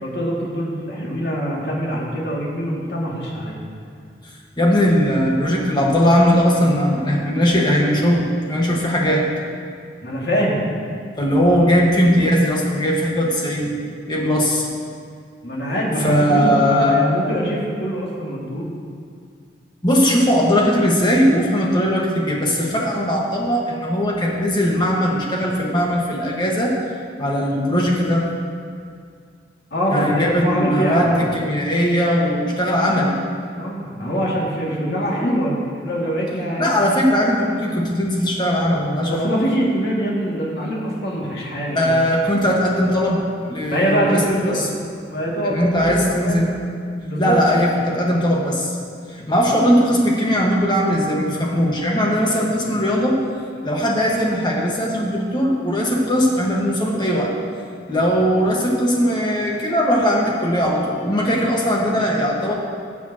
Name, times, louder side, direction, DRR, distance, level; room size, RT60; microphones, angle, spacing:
voice 1, 0.0-3.6 10.0-10.7 11.6-11.7 15.4-18.7 29.7-31.2 33.6-36.8 39.1-42.0 43.7-44.7 45.1-46.4 47.0-47.4, equal, 70° left, -5 dB, 2.4 m, -23 dB
voice 2, 4.2-9.3 11.2-13.7 14.0-14.7 16.0-17.0 19.8-26.8 27.2-28.3 29.9-33.2 36.6-39.3 41.7-44.7 45.4-46.5 47.2-48.8 49.1-53.2 53.6-57.3 57.9-62.5, equal, 25° left, -3 dB, 1.6 m, -19 dB
19.0 x 7.2 x 3.0 m, 2.2 s
head